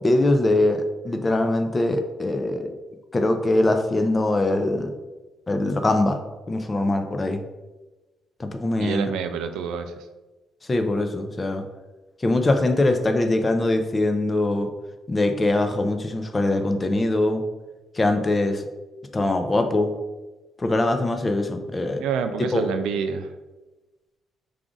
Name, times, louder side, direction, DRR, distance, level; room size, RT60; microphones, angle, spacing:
voice 1, 0.0-2.7 3.1-4.9 5.5-6.2 6.5-7.4 8.4-9.1 10.7-11.6 12.2-14.7 15.1-17.4 17.9-18.6 19.1-19.9 20.6-22.0 22.5-22.7, left 2 dB, 25° left, 7 dB, 0.5 m, -22 dB
voice 2, 8.8-9.9 22.0-23.3, right 6 dB, 90° right, 8 dB, 0.3 m, -27 dB
4.9 x 2.4 x 3.8 m, 1.2 s
cardioid pair, 90°, 0 cm